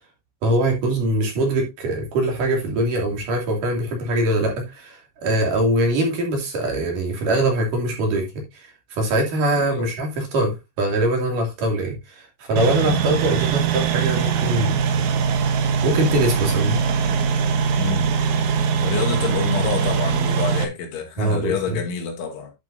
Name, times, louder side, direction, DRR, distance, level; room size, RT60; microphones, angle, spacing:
voice 1, 0.4-8.3 8.5-14.8 15.8-16.8 21.2-21.5, right 1 dB, 50° right, 3.8 m, -22 dB
voice 2, 9.6-9.9 12.8-13.0 17.8-18.1 18.8-22.5, left 6 dB, 90° left, 4.5 m, -27 dB
sound 1, 12.6-20.6, right 6 dB, 80° right, 1.7 m, -21 dB
11.5 x 7.6 x 2.7 m
omnidirectional pair, 5.3 m